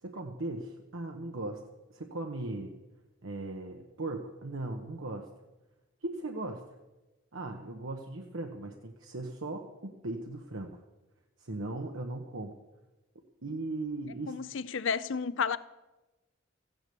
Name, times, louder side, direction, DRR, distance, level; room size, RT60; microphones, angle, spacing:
voice 1, 0.0-1.7 1.9-2.7 3.2-5.3 6.0-6.8 7.3-10.8 11.4-12.5 13.4-14.4, right 2 dB, 85° right, 1.1 m, -38 dB
voice 2, 14.3-15.6, left 6 dB, 70° left, 0.6 m, -31 dB
14.5 x 10.0 x 6.9 m
head